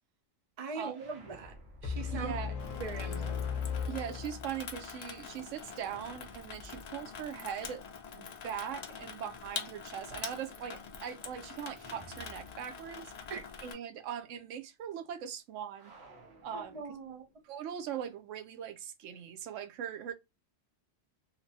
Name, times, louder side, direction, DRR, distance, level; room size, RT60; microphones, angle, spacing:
voice 1, 0.6-1.5 1.8-2.4 2.8-3.4 13.3-13.4 16.5-17.2, right 5 dB, 40° right, 0.6 m, -41 dB
sound 1, 0.9-2.8 5.5-8.5 11.7-13.1 13.4-13.5 15.7-17.5, right 1 dB, 60° right, 1.2 m, -56 dB
sound 2, 1.8-4.9, left 6 dB, 45° left, 0.8 m, -37 dB
voice 2, 2.1-2.5 3.9-7.8 8.1-13.1 13.6-15.9 16.4-16.8 17.4-20.1, right 9 dB, 90° right, 0.9 m, -40 dB
Water tap faucet / Sink (filling or washing), 2.6-13.7, left 6 dB, 70° left, 0.4 m, -45 dB
3.0 x 2.1 x 2.6 m
omnidirectional pair, 1.3 m